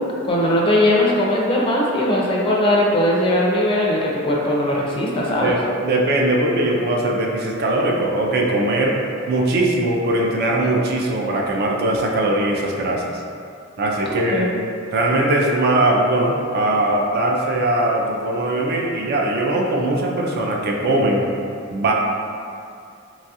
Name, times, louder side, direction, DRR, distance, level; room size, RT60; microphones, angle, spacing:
voice 1, 0.2-5.5 14.1-14.6, left 1 dB, 25° left, -3 dB, 0.4 m, -19 dB
voice 2, 5.4-9.0 9.3-13.1 13.8-14.5 14.9-21.2 21.7-21.9, right 1 dB, 50° right, 0 dB, 0.4 m, -20 dB
2.9 x 2.3 x 2.7 m, 2.4 s
head